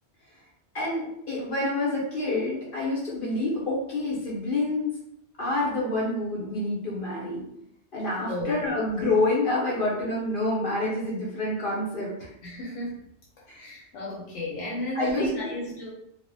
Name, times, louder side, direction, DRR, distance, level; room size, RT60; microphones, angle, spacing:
voice 1, 0.7-4.9 5.4-7.4 7.9-12.3 13.5-13.7 14.9-15.5, left 2 dB, 55° left, -5 dB, 0.7 m, -27 dB
voice 2, 8.3-8.6 12.4-13.0 13.5-15.9, left 1 dB, 85° left, -5 dB, 0.9 m, -33 dB
2.4 x 2.0 x 2.5 m, 0.74 s
omnidirectional pair, 1.2 m